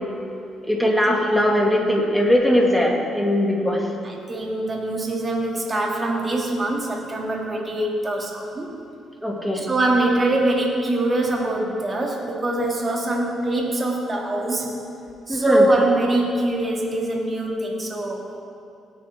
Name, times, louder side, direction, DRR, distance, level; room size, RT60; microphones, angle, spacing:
voice 1, 0.7-3.9 9.2-9.6 15.3-15.7, left 1 dB, ahead, -1 dB, 2.1 m, -20 dB
voice 2, 4.0-8.8 9.6-14.7 15.3-18.3, right 1 dB, 30° right, -1 dB, 2.2 m, -23 dB
18.0 x 9.2 x 3.5 m, 2.7 s
cardioid pair, 90°, 0 cm